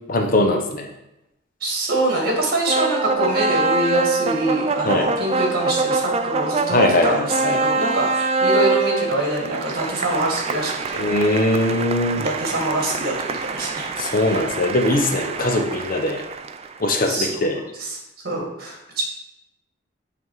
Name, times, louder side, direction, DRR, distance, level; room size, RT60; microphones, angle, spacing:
voice 1, 0.1-0.9 4.8-5.1 6.7-7.6 11.0-12.2 14.0-16.2 16.8-17.6, left 1 dB, 45° left, 3 dB, 0.7 m, -21 dB
voice 2, 1.6-11.0 12.1-14.4 17.0-17.5 17.8-18.0 18.2-19.0, right 1 dB, 50° right, -1 dB, 1.9 m, -24 dB
sound 1, 2.7-16.8, right 4 dB, 30° right, 0.3 m, -25 dB
7.9 x 3.6 x 4.7 m, 0.87 s
head